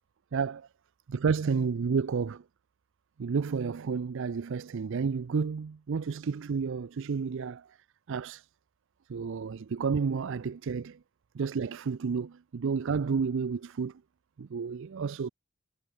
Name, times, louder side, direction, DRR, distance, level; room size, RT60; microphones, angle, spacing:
voice 1, 0.3-0.7 1.1-2.4 3.2-7.7 8.1-8.5 9.1-11.0 11.3-13.9 14.4-15.3, right 5 dB, 65° right, 0.4 m, -31 dB
head